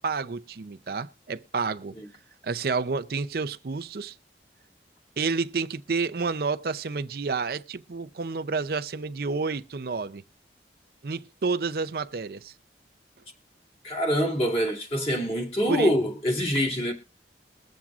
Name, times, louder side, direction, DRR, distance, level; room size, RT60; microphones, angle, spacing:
voice 1, 0.0-1.9 2.4-4.2 5.2-10.2 11.0-12.5 15.7-15.9, right 4 dB, 55° right, 0.5 m, -30 dB
voice 2, 13.8-16.9, equal, 35° left, 2.4 m, -25 dB
22.0 x 7.3 x 2.4 m
head